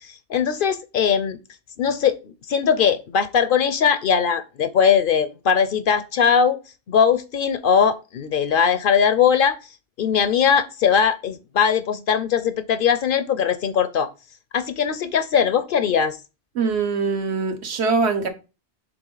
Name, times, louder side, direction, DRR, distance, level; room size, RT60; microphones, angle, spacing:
voice 1, 0.0-1.4 1.8-6.6 6.9-9.6 10.0-14.1 14.5-16.2, left 7 dB, 60° left, 0.6 m, -20 dB
voice 2, 16.6-18.3, right 4 dB, 75° right, 1.2 m, -22 dB
6.9 x 3.8 x 3.9 m
omnidirectional pair, 1.1 m